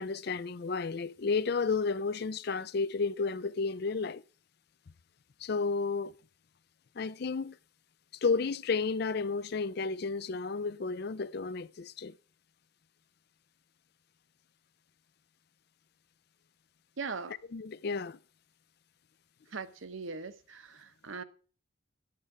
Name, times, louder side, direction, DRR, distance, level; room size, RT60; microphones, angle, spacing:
voice 1, 0.0-4.2 5.4-6.1 7.0-7.6 8.2-12.1 17.5-18.2, left 4 dB, 50° left, 0.4 m, -32 dB
voice 2, 17.0-17.4 19.5-21.2, right 4 dB, 75° right, 0.9 m, -40 dB
11.5 x 8.6 x 4.8 m
head